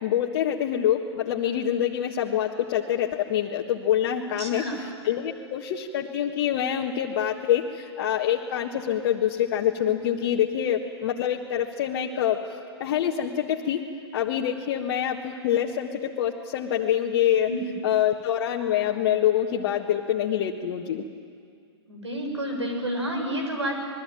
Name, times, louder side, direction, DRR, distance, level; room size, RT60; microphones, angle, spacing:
voice 1, 0.0-4.6 5.0-12.4 12.8-13.8 14.1-17.5 17.8-21.0, left 10 dB, 45° left, -1 dB, 1.6 m, -25 dB
voice 2, 4.2-4.8 17.5-17.6 21.9-23.7, equal, 80° right, 2 dB, 6.9 m, -30 dB
26.5 x 21.0 x 9.1 m, 2.2 s
figure-of-eight pair, 115°, 15 cm